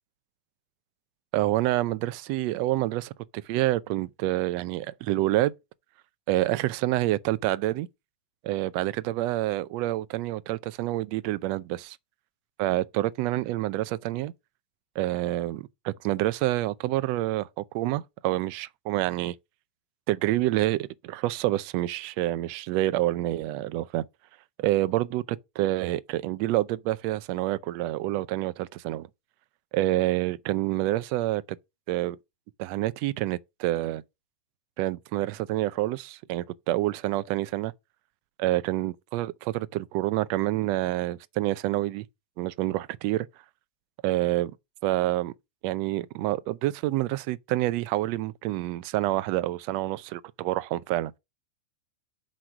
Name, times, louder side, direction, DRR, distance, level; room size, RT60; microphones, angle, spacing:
voice 1, 1.3-5.5 6.3-7.9 8.4-12.0 12.6-14.3 15.0-19.4 20.1-24.0 24.6-29.1 29.7-31.6 31.9-32.2 32.6-34.0 34.8-37.7 38.4-42.1 42.4-43.3 44.0-44.5 44.8-45.3 45.6-51.1, right 16 dB, 35° right, 0.4 m, -27 dB
7.8 x 3.1 x 6.0 m
supercardioid pair, 160°, 6 cm